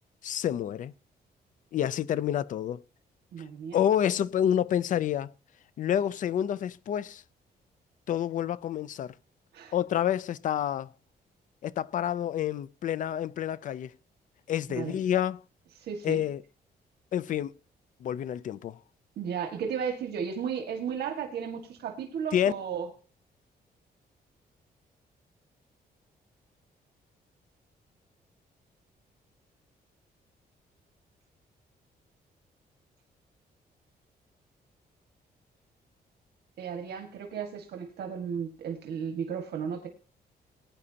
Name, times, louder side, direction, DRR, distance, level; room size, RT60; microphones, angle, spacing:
voice 1, 0.2-0.9 1.7-2.8 3.7-5.3 5.8-7.2 8.1-9.1 9.7-10.9 11.6-13.9 14.5-15.4 16.0-16.4 17.1-17.5 18.0-18.8 22.3-22.5, left 10 dB, 50° left, 0.5 m, -28 dB
voice 2, 3.3-3.8 9.5-9.7 14.7-15.0 15.8-16.2 19.2-22.9 36.6-39.9, right 7 dB, 80° right, 1.8 m, -34 dB
20.0 x 9.7 x 2.8 m
wide cardioid pair, 175°, 17 cm